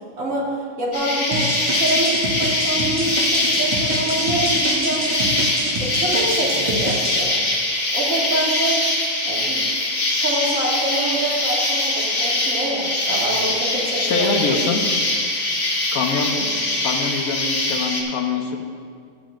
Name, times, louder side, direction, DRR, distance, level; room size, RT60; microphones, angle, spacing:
voice 1, 0.2-1.5 1.8-5.4 5.8-7.4 7.9-8.8 9.3-9.6 10.2-14.6 16.3-16.4, right 2 dB, 70° right, -5 dB, 2.4 m, -26 dB
Insect, 0.9-18.0, left 2 dB, 70° left, 1.8 m, -22 dB
sound 1, 1.3-7.2, right 1 dB, 30° right, 0.6 m, -28 dB
voice 2, 13.9-14.8 15.9-16.3 16.8-18.6, left 4 dB, 90° left, 4 dB, 1.3 m, -24 dB
15.0 x 9.0 x 2.5 m, 2.2 s
omnidirectional pair, 1.4 m